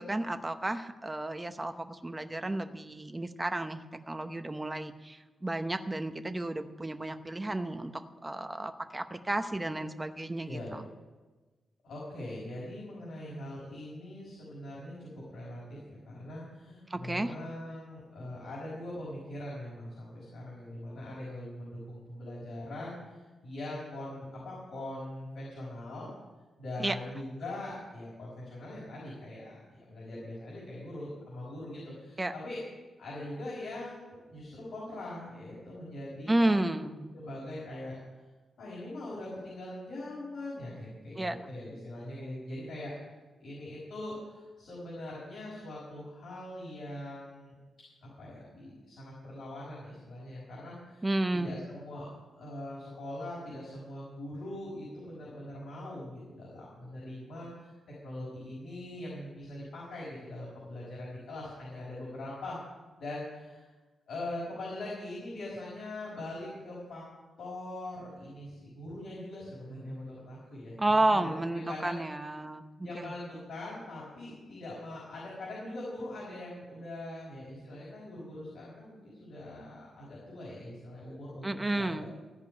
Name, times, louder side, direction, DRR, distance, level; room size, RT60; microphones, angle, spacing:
voice 1, 0.0-10.9 16.9-17.3 26.8-27.0 32.2-32.3 36.3-37.1 41.2-41.4 51.0-51.6 70.8-73.1 81.4-82.0, right 2 dB, 15° right, 8 dB, 0.8 m, -32 dB
voice 2, 10.4-10.8 11.8-15.8 16.0-26.1 26.6-32.6 33.0-36.7 37.1-38.0 38.6-42.9 43.4-47.6 48.0-51.1 51.3-52.1 52.4-57.7 58.0-62.6 63.0-63.7 64.1-67.0 67.4-72.0 72.8-82.0, left 1 dB, 70° left, -7 dB, 5.0 m, -42 dB
15.5 x 5.2 x 9.5 m, 1.2 s
wide cardioid pair, 135°, 0 cm